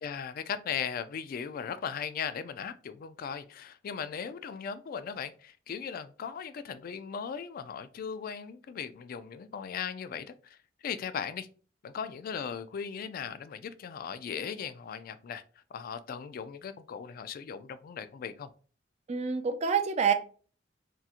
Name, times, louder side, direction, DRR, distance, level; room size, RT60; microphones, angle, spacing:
voice 1, 0.0-11.5 11.8-15.4 15.7-18.5, left 7 dB, 50° left, 0.3 m, -38 dB
voice 2, 19.1-20.1, right 6 dB, 35° right, 0.4 m, -27 dB
3.7 x 2.8 x 2.4 m
head